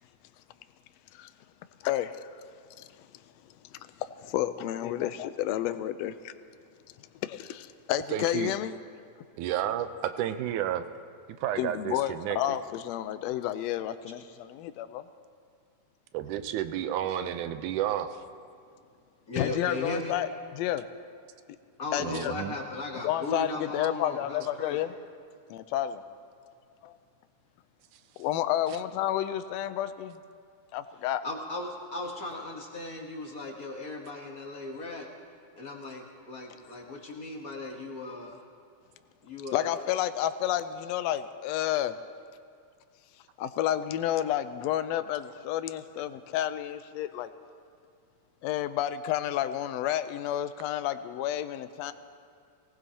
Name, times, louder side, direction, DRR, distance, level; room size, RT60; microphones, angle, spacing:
voice 1, 1.8-2.3 2.8-2.9 3.7-6.3 7.2-8.7 11.6-15.0 19.4-20.9 21.9-22.3 23.0-24.9 25.5-26.0 26.8-27.0 28.2-30.2 30.7-31.2 39.5-42.0 43.4-47.3 48.4-51.9, left 12 dB, 80° left, 11 dB, 1.6 m, -30 dB
voice 2, 8.1-8.5 9.4-10.8 11.4-12.4 16.1-18.2 22.0-22.6 28.7-28.8, right 11 dB, 90° right, 10 dB, 2.2 m, -31 dB
voice 3, 19.3-20.1 21.8-24.8 31.2-35.1 35.5-38.4 39.2-39.8, left 2 dB, 55° left, 0 dB, 1.0 m, -37 dB
24.0 x 18.5 x 2.8 m, 2.3 s
omnidirectional pair, 3.5 m